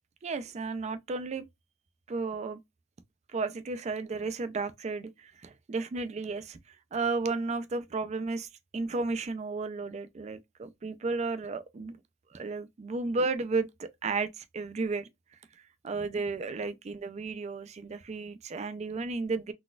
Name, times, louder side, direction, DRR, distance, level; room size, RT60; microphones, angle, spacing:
voice 1, 0.2-1.5 2.1-2.6 3.3-11.9 12.3-15.1 15.8-19.5, right 3 dB, 35° right, 0.4 m, -33 dB
3.9 x 2.2 x 2.4 m
head